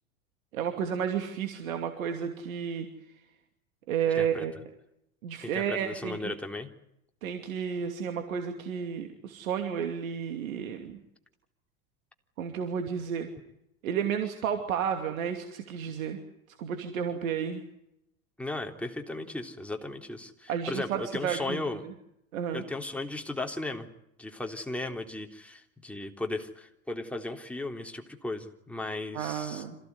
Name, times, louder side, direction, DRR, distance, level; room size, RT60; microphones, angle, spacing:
voice 1, 0.5-2.9 3.9-4.5 5.2-6.3 7.2-11.0 12.4-13.3 13.8-16.2 16.6-17.6 20.5-21.9 22.3-22.6 29.1-29.8, right 8 dB, 80° right, 6 dB, 2.8 m, -32 dB
voice 2, 4.2-4.5 5.5-6.7 18.4-21.8 22.5-23.9 24.2-29.6, left 2 dB, 5° left, 3 dB, 3.5 m, -36 dB
27.0 x 16.5 x 9.7 m, 0.81 s
hypercardioid pair, 95°, 41 cm